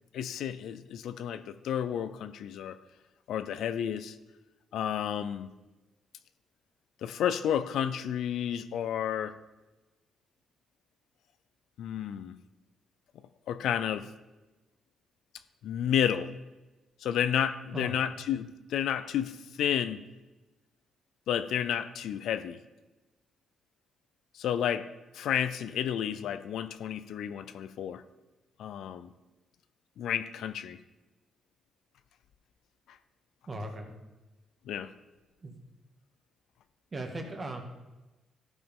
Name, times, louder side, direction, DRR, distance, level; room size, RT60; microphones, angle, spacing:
voice 1, 0.1-2.8 3.3-4.2 4.7-5.5 7.0-9.3 11.8-12.3 13.5-14.1 15.6-16.3 17.0-20.0 21.3-22.6 24.3-24.9 25.1-28.0 28.6-29.1 30.0-30.8 34.7-34.9, left 9 dB, 80° left, 12 dB, 0.5 m, -31 dB
voice 2, 33.5-33.9 35.4-35.6 36.9-37.6, right 2 dB, 30° right, 3 dB, 1.8 m, -38 dB
13.5 x 5.1 x 5.4 m, 1.1 s
cardioid pair, 90°, 0 cm